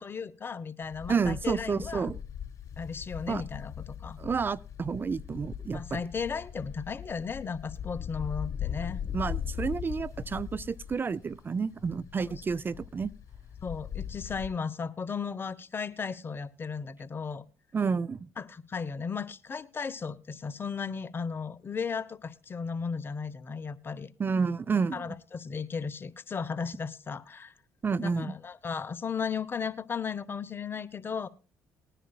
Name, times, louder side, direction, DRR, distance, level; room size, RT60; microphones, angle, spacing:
voice 1, 0.0-2.1 2.8-4.2 5.7-9.0 12.2-12.3 13.6-17.4 18.4-24.1 24.9-27.5 28.0-31.3, left 5 dB, 35° left, 0.9 m, -35 dB
sound 1, 0.8-14.5, left 9 dB, 60° left, 3.6 m, -40 dB
voice 2, 1.1-2.2 3.3-3.4 4.2-6.0 9.1-13.1 17.7-18.3 24.2-25.1 27.8-28.3, right 5 dB, 35° right, 0.5 m, -30 dB
20.5 x 10.0 x 2.3 m
supercardioid pair, 60°, 6 cm